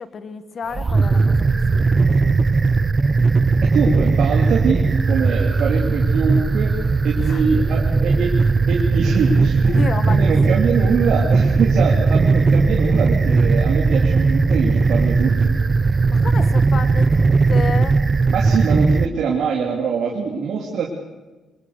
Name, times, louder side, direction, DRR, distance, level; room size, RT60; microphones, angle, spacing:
voice 1, 0.0-1.9 2.2-2.4 7.2-7.4 9.7-10.3 16.1-18.0, left 5 dB, 50° left, 12 dB, 1.8 m, -31 dB
sound 1, 0.7-19.1, right 4 dB, 30° right, 0.9 m, -17 dB
voice 2, 3.6-8.3 8.7-9.8 10.1-15.5 18.3-20.9, right 5 dB, 70° right, -1 dB, 3.1 m, -23 dB
24.0 x 20.0 x 6.8 m, 1.2 s
cardioid pair, 90°, 0 cm